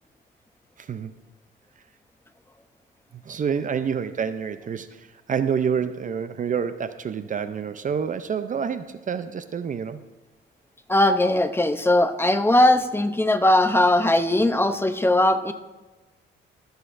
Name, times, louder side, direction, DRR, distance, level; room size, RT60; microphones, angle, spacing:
voice 1, 0.8-1.1 3.3-10.0, right 7 dB, 40° right, 12 dB, 0.5 m, -28 dB
voice 2, 10.9-15.5, left 1 dB, 10° left, 9 dB, 0.7 m, -19 dB
22.5 x 8.0 x 2.6 m, 1.2 s
cardioid pair, 90°, 20 cm